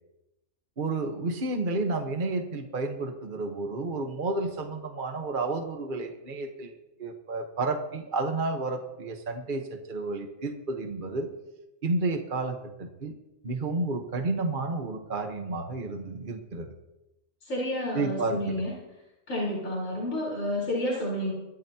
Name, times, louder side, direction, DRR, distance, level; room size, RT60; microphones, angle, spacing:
voice 1, 0.8-6.7 7.0-11.3 11.8-13.1 13.4-16.7 17.9-18.6, right 3 dB, 40° right, 4 dB, 1.4 m, -31 dB
voice 2, 17.4-18.7 19.3-21.3, left 1 dB, 75° left, -5 dB, 4.7 m, -30 dB
23.5 x 13.0 x 2.9 m, 0.97 s
omnidirectional pair, 1.4 m